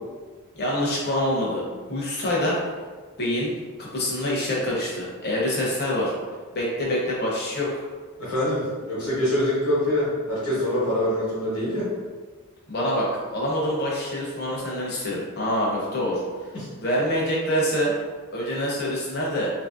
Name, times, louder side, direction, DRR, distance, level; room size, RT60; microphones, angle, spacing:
voice 1, 0.5-1.6 1.9-2.6 3.2-3.5 3.8-6.1 6.5-7.8 12.7-16.2 16.8-17.9 18.3-19.5, equal, 45° left, -4 dB, 0.8 m, -25 dB
voice 2, 8.2-11.9 16.5-16.7, left 1 dB, 70° left, -8 dB, 1.1 m, -25 dB
2.9 x 2.6 x 2.4 m, 1.4 s
head